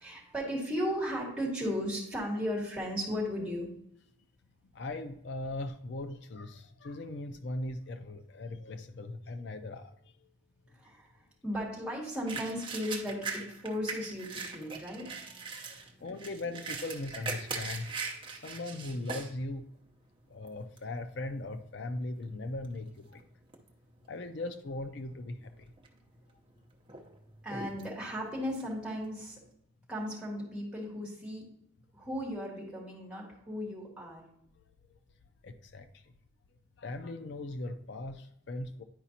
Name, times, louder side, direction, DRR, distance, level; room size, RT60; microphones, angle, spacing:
voice 1, 0.0-3.7 10.7-15.5 27.4-29.4 29.9-31.5 31.9-34.2, equal, 5° right, -4 dB, 2.0 m, -36 dB
voice 2, 4.7-10.3 15.5-19.7 20.3-23.2 24.1-25.7 35.4-36.1 36.8-38.8, left 2 dB, 60° left, 9 dB, 0.4 m, -39 dB
sound 1, 12.3-19.3 19.9-20.0 20.5-20.9 21.6-21.7 22.1-23.2 23.5-24.1 24.4-24.5 25.4-26.0 26.4-29.5, right 4 dB, 25° right, 0.8 m, -41 dB
10.0 x 4.9 x 2.8 m, 0.74 s
head